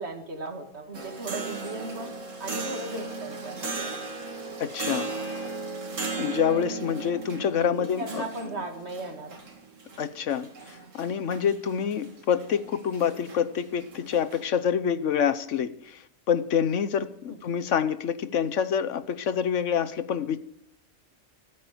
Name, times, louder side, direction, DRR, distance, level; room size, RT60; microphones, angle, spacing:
voice 1, 0.0-2.1 2.4-4.0 6.5-6.7 7.7-9.4 17.3-17.4, right 2 dB, 60° right, 4 dB, 2.3 m, -37 dB
sound 1, 0.9-14.4, right 3 dB, 85° right, 2.4 m, -37 dB
voice 2, 4.6-5.5 6.2-8.2 10.0-16.0 16.3-20.4, left 8 dB, 80° left, 14 dB, 1.2 m, -27 dB
14.0 x 13.0 x 5.2 m, 0.72 s
omnidirectional pair, 1.3 m